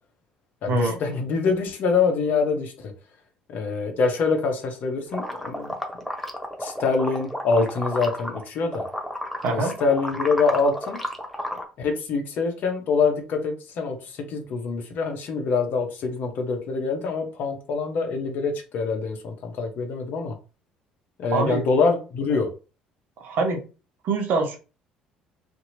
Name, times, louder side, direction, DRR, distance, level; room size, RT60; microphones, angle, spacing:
voice 1, 0.6-2.9 3.5-5.7 6.6-8.9 9.5-11.0 11.8-20.3 21.2-22.5, left 4 dB, 50° left, 4 dB, 0.8 m, -25 dB
sound 1, 5.1-8.4 8.7-11.6, equal, 5° left, 0.7 m, -32 dB
voice 2, 21.3-21.7 23.2-23.6 24.0-24.6, right 3 dB, 55° right, 3 dB, 0.8 m, -24 dB
2.8 x 2.6 x 2.6 m, 0.34 s
figure-of-eight pair, 55°, 4 cm